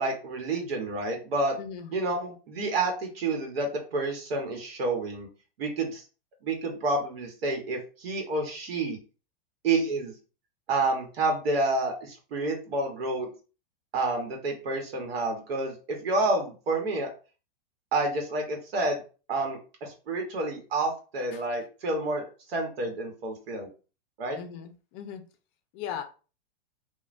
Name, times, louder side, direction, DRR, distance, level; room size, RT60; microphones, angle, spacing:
voice 1, 0.0-1.5 1.9-5.3 5.6-6.0 6.4-9.0 9.6-10.1 10.7-13.3 13.9-17.1 17.9-19.0 19.3-23.7 24.2-24.4, right 2 dB, 85° right, 3 dB, 1.0 m, -29 dB
voice 2, 1.6-1.9 21.3-21.4 24.3-25.2 25.7-26.0, left 8 dB, 35° left, 7 dB, 0.5 m, -38 dB
3.1 x 2.2 x 2.5 m, 0.35 s
supercardioid pair, 140°, 30 cm